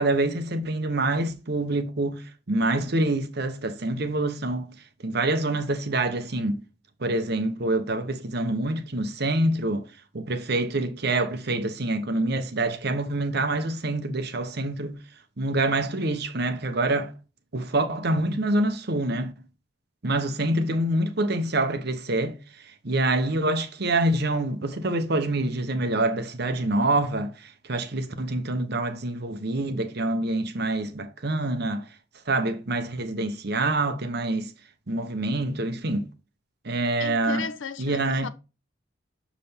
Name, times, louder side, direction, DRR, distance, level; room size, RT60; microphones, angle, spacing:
voice 1, 0.0-4.7 5.0-6.6 7.0-9.9 10.1-15.0 15.4-17.1 17.5-19.3 20.0-31.9 32.3-34.5 34.9-36.1 36.6-37.5 37.8-38.3, right 2 dB, 50° right, 0.9 m, -26 dB
voice 2, 37.0-38.3, left 5 dB, 70° left, 0.7 m, -35 dB
6.6 x 5.0 x 3.4 m
head